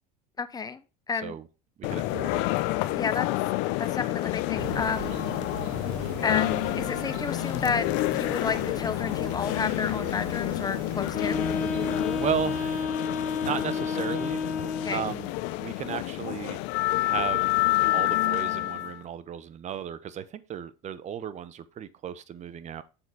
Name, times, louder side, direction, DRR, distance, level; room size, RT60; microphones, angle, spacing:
voice 1, 0.4-0.8 1.1-1.4 3.0-3.3 3.8-5.2 6.2-7.9 8.1-11.5 14.8-15.0, left 5 dB, 20° left, 0.8 m, -31 dB
sound 1, 1.8-19.0, left 18 dB, 70° left, 0.6 m, -29 dB
voice 2, 1.8-2.4 12.2-12.9 13.4-14.5 14.8-15.3 15.6-16.6 17.0-17.6 17.9-22.8, right 9 dB, 35° right, 0.8 m, -34 dB
sound 2, 4.6-12.9, right 9 dB, 70° right, 1.2 m, -41 dB
Wind instrument woodwind instrument, 11.1-15.3, left 4 dB, 45° left, 1.7 m, -31 dB
7.1 x 4.0 x 4.8 m
supercardioid pair, 110°, 20 cm